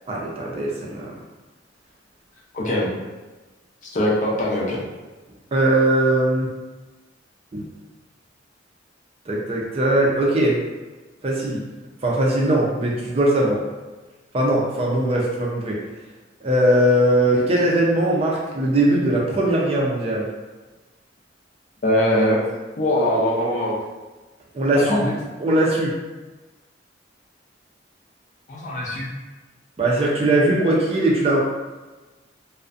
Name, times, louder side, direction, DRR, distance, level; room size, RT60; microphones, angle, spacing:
voice 1, 0.1-1.1 5.5-6.5 7.5-7.7 9.3-10.6 11.2-11.6 12.0-13.6 14.3-15.8 16.4-20.3 24.5-25.1 25.4-25.9 29.8-31.4, right 1 dB, 30° right, -3 dB, 0.4 m, -20 dB
voice 2, 2.5-2.9 3.9-4.8 21.8-22.4 22.8-23.8 24.7-25.1 28.5-29.1, left 1 dB, 40° left, -4 dB, 0.5 m, -21 dB
2.4 x 2.1 x 2.4 m, 1.2 s
head